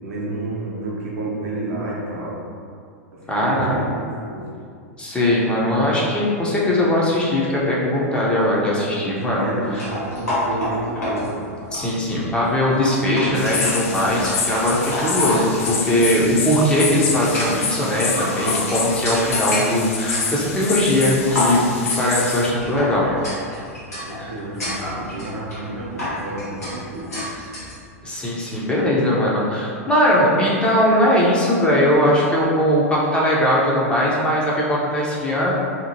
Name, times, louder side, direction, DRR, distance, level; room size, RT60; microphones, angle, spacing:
voice 1, 0.0-2.4 3.1-4.4 9.1-11.5 23.9-27.1, right 2 dB, 65° right, -4 dB, 0.7 m, -30 dB
voice 2, 3.3-4.0 5.0-9.8 11.7-23.1 24.2-24.3 28.0-35.5, left 1 dB, 10° left, -5 dB, 0.6 m, -20 dB
sound 1, 9.7-27.8, left 1 dB, 80° left, 1.1 m, -30 dB
sound 2, 13.3-22.5, left 5 dB, 60° left, 0.4 m, -27 dB
2.8 x 2.4 x 2.7 m, 2.3 s
figure-of-eight pair, 95°, 8 cm